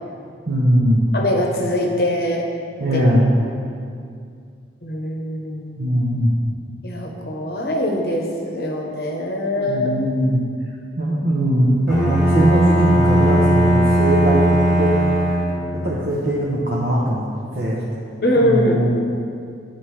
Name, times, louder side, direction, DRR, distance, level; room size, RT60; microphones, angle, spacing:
voice 1, 0.5-1.1 2.8-3.3 5.8-6.4 9.7-10.4 11.0-14.4 14.8-15.0 15.8-17.3 17.5-17.8 18.4-19.0, right 1 dB, 55° right, -6 dB, 0.8 m, -20 dB
voice 2, 1.1-2.4 2.9-3.0 4.8-6.0 6.8-9.9 15.7-15.9 18.2-18.8, left 1 dB, 55° left, 0 dB, 0.9 m, -22 dB
Bowed string instrument, 11.9-15.8, right 1 dB, ahead, 1.4 m, -17 dB
10.0 x 4.3 x 3.2 m, 2.3 s
head